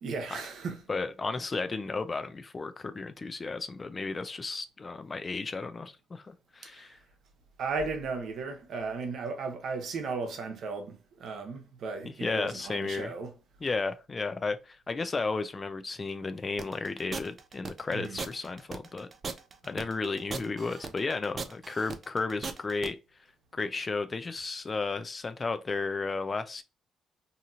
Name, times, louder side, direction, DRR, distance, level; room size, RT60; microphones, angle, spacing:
voice 1, 0.0-0.8 6.6-6.9 7.6-13.3 17.9-18.2, right 4 dB, 70° right, 0.9 m, -35 dB
voice 2, 0.9-7.0 12.1-13.1 13.6-19.1 19.6-23.0 23.5-26.6, left 4 dB, 30° left, 0.4 m, -33 dB
sound 1, 16.6-22.9, right 4 dB, 40° right, 0.4 m, -38 dB
2.8 x 2.7 x 2.4 m
cardioid pair, 90°, 0 cm